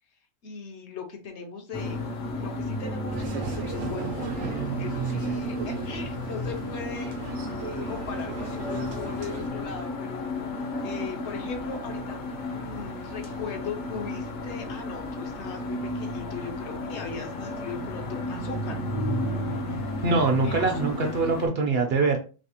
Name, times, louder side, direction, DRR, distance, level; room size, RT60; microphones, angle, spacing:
voice 1, 0.4-2.1 2.4-4.3 4.8-7.1 7.9-10.3 10.8-12.2 12.5-18.8 20.4-21.2, left 5 dB, 65° left, 4 dB, 0.9 m, -38 dB
sound 1, 1.7-21.5, left 1 dB, 80° left, 1.2 m, -33 dB
sound 2, 3.1-9.5, right 7 dB, 80° right, 1.0 m, -35 dB
voice 2, 20.0-22.2, right 3 dB, 60° right, 3 dB, 0.7 m, -23 dB
3.3 x 2.8 x 2.8 m, 0.35 s
omnidirectional pair, 1.4 m